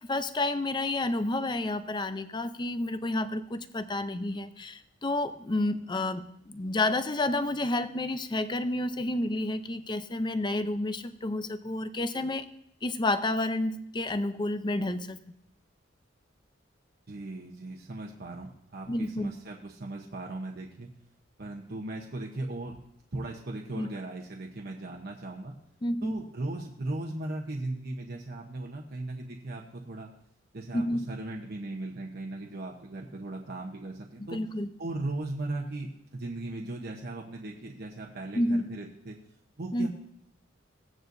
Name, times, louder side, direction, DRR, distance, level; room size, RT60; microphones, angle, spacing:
voice 1, 0.1-12.5 12.8-15.2 18.9-19.3 23.8-23.9 25.8-26.2 30.7-31.1 34.2-34.7 38.3-38.6 39.7-39.9, left 2 dB, 25° left, 11 dB, 0.6 m, -30 dB
voice 2, 17.1-20.9 21.4-22.8 23.1-25.5 26.0-30.1 30.5-34.4 34.8-39.2 39.6-39.9, right 2 dB, 55° right, 0 dB, 0.9 m, -37 dB
17.5 x 9.1 x 2.7 m, 0.75 s
head